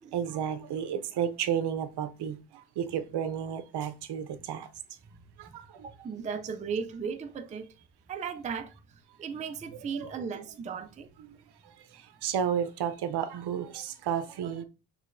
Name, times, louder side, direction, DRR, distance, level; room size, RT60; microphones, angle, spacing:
voice 1, 0.1-5.0 5.4-5.9 9.9-10.2 11.2-14.6, right 8 dB, 70° right, 0.6 m, -33 dB
voice 2, 5.4-7.7 8.1-11.1, right 6 dB, 20° right, 0.3 m, -37 dB
6.4 x 3.1 x 2.6 m
wide cardioid pair, 155°, 41 cm